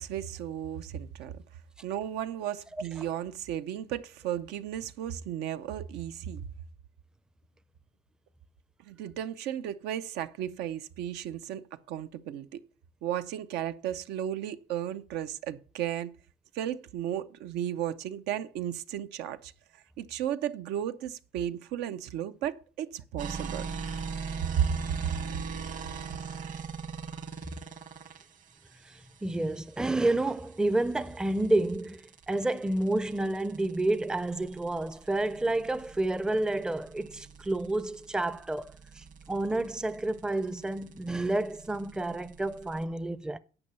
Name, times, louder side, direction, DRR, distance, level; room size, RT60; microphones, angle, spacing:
voice 1, 0.0-1.4 1.8-6.5 8.9-12.6 13.0-16.1 16.5-23.7 24.6-24.8 25.0-25.1, right 10 dB, 85° right, 0.7 m, -34 dB
sound 1, 23.2-42.8, right 5 dB, 50° right, 1.2 m, -41 dB
voice 2, 29.2-43.4, right 2 dB, 5° right, 0.4 m, -30 dB
9.8 x 5.5 x 6.8 m
cardioid pair, 110°, 17 cm